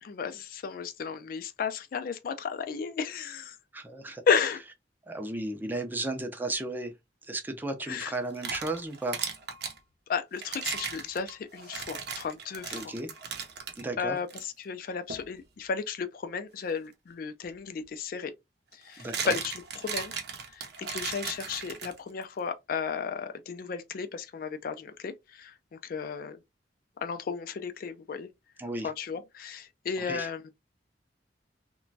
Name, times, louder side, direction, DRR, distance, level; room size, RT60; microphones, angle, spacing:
voice 1, 0.0-3.6 4.3-4.6 7.9-8.1 10.1-12.9 14.0-18.3 18.7-20.1 20.4-26.4 27.0-28.3 28.8-30.4, left 6 dB, 55° left, 0.3 m, -34 dB
voice 2, 3.7-4.2 5.1-6.9 7.2-9.2 12.7-13.1 13.8-14.2 19.0-19.3 28.6-28.9 30.0-30.3, right 2 dB, 10° right, 0.4 m, -34 dB
sound 1, 8.1-9.8 10.4-13.8 14.3-14.4 15.1-15.3 17.4-17.5 18.7-22.2, right 6 dB, 65° right, 0.6 m, -37 dB
2.9 x 2.2 x 2.6 m
head